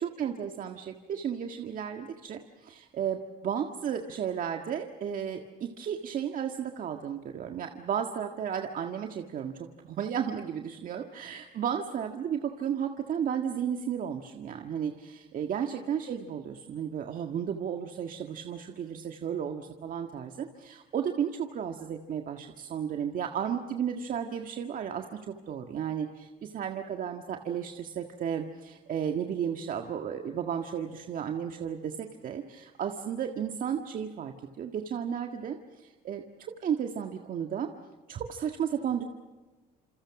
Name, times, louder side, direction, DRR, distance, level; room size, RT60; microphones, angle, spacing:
voice 1, 0.0-37.7 38.1-39.0, right 8 dB, 55° right, 4 dB, 1.7 m, -33 dB
28.0 x 27.5 x 6.0 m, 1.3 s
cardioid pair, 110°, 17 cm